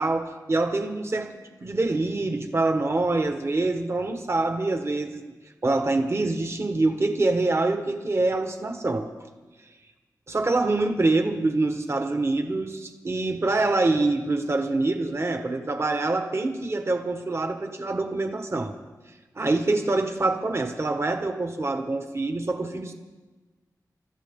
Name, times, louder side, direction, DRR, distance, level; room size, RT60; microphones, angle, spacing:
voice 1, 0.0-1.3 1.6-5.2 5.6-9.1 10.3-18.7 19.4-22.9, right 2 dB, 40° right, 5 dB, 1.4 m, -25 dB
24.5 x 13.5 x 3.7 m, 1.2 s
wide cardioid pair, 90°, 7 cm